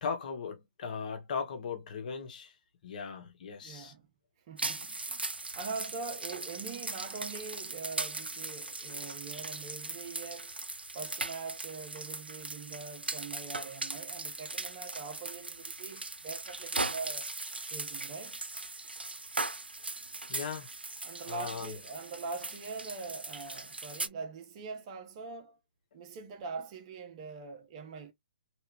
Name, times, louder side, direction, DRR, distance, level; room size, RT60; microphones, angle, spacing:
voice 1, 0.0-2.5 2.8-3.9 20.3-20.7 21.3-21.7, left 6 dB, 50° left, 1.3 m, -38 dB
voice 2, 3.6-4.1 4.5-10.6 10.9-17.3 17.6-18.4 21.0-25.6 25.9-28.1, right 4 dB, 35° right, 1.0 m, -43 dB
sound 1, 4.6-24.1, right 3 dB, 90° right, 0.5 m, -39 dB
3.2 x 2.8 x 3.3 m
figure-of-eight pair, 130°, 5 cm